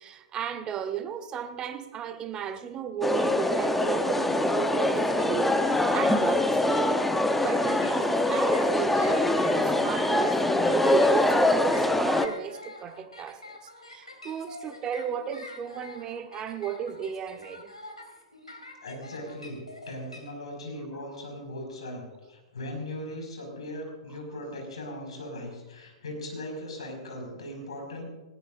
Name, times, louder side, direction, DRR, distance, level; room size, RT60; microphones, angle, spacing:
voice 1, 0.0-7.0 7.4-13.6 13.9-17.7 20.9-21.2, right 8 dB, 25° right, 1.1 m, -34 dB
sound 1, 3.0-12.3, left 1 dB, 5° left, 0.8 m, -24 dB
sound 2, 7.4-20.2, left 2 dB, 85° left, 3.6 m, -45 dB
voice 2, 18.8-19.6 19.9-28.0, left 1 dB, 65° left, 5.4 m, -38 dB
19.5 x 18.5 x 2.6 m
figure-of-eight pair, 105°, 3 cm